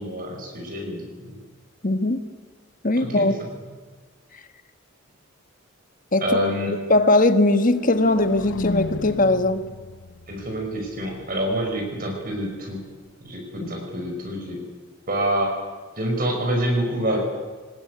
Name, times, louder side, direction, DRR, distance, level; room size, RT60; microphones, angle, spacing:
voice 1, 0.0-1.4 3.0-3.3 6.2-6.7 10.3-12.8 13.2-14.6 15.1-15.6 16.0-17.2, right 1 dB, 40° right, 1 dB, 5.0 m, -26 dB
voice 2, 1.8-2.2 2.8-3.3 6.1-6.3 6.9-9.6 13.6-13.7, left 2 dB, 40° left, 10 dB, 1.4 m, -19 dB
sound 1, 7.5-11.5, left 3 dB, 55° left, 0.7 m, -34 dB
21.5 x 19.5 x 9.5 m, 1.4 s
head